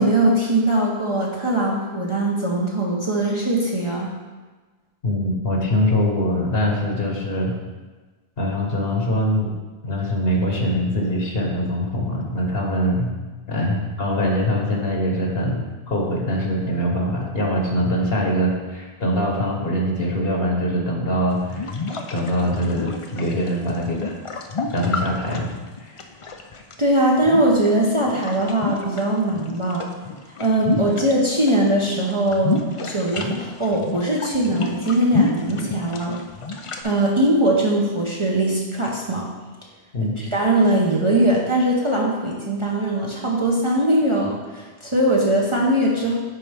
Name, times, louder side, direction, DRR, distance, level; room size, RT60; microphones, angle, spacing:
voice 1, 0.0-4.1 26.8-29.9 30.4-32.6 32.8-36.2 36.8-39.3 40.0-46.2, right 1 dB, 30° right, -3 dB, 0.8 m, -21 dB
voice 2, 5.0-7.5 8.4-9.5 9.8-13.1 13.5-15.6 15.9-21.8 22.1-24.2 24.7-25.5 25.8-26.0 30.7-30.8 39.9-40.1, equal, 65° left, -1 dB, 1.4 m, -23 dB
sound 1, 21.3-26.7 27.2-29.0 29.3-31.6 31.8-36.8, left 3 dB, 45° left, 0.5 m, -29 dB
10.0 x 4.2 x 3.5 m, 1.3 s
omnidirectional pair, 1.1 m